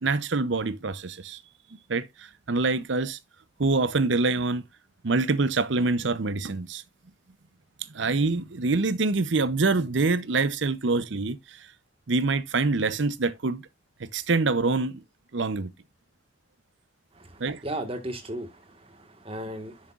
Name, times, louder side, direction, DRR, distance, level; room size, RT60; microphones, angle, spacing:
voice 1, 0.0-1.4 1.9-3.2 3.6-4.6 5.0-6.8 7.9-11.6 12.1-13.6 14.0-15.0 15.3-15.7 17.4-17.6, right 3 dB, 70° right, 0.7 m, -25 dB
voice 2, 17.2-19.9, right 1 dB, 30° right, 1.5 m, -36 dB
10.5 x 6.5 x 2.4 m
head